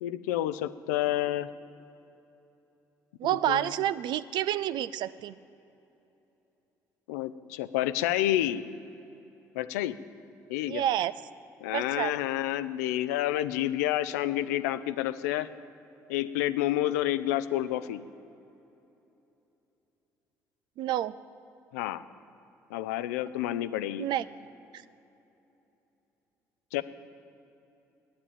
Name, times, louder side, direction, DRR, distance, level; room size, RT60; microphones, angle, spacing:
voice 1, 0.0-1.5 3.5-3.6 7.1-8.6 9.5-10.0 10.5-10.8 11.6-15.5 16.1-18.0 21.7-22.0 22.7-24.1 26.7-26.8, left 13 dB, 80° left, 13 dB, 0.5 m, -29 dB
voice 2, 3.2-5.4 10.7-11.1 11.7-12.2 20.8-21.2 24.0-24.3 24.7-24.8, right 12 dB, 60° right, 16 dB, 0.5 m, -29 dB
11.5 x 9.6 x 9.0 m, 3.0 s
hypercardioid pair, 50°, 9 cm